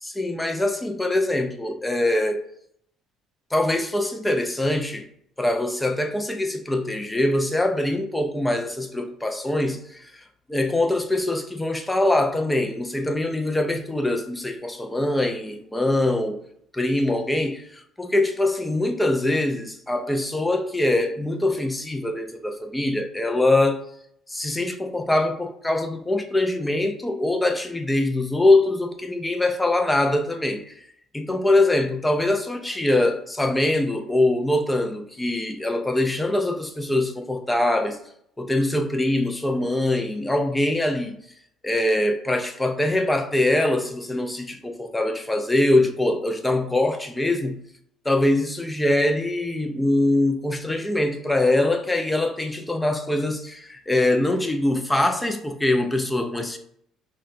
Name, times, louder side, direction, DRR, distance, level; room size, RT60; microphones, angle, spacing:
voice 1, 0.0-2.4 3.5-5.1 5.4-16.4 16.7-23.9 24.3-30.8 31.1-38.0 38.4-41.2 41.6-47.6 48.0-56.6, left 1 dB, 10° left, 0.4 m, -23 dB
5.6 x 2.2 x 2.6 m
cardioid pair, 110°, 0 cm